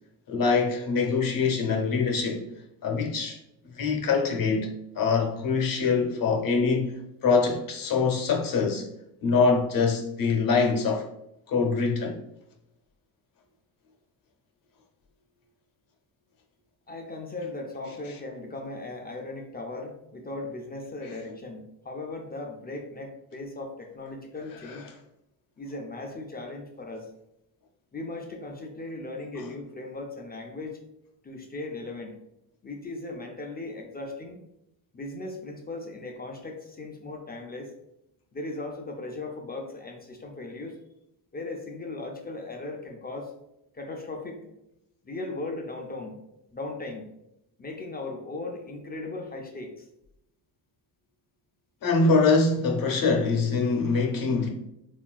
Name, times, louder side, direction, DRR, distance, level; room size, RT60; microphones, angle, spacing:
voice 1, 0.3-2.4 2.8-3.4 3.6-8.8 9.2-11.0 11.5-12.2 24.7-24.8 51.8-54.5, left 4 dB, 50° left, 0.8 m, -24 dB
voice 2, 16.9-24.8 25.6-27.1 27.9-30.8 31.2-32.2 32.6-34.4 34.9-37.7 38.3-40.8 41.3-43.3 43.7-44.4 45.1-46.2 46.5-47.1 47.6-49.8, left 2 dB, 25° left, 0.4 m, -37 dB
3.5 x 2.3 x 2.3 m
cardioid pair, 85°, 42 cm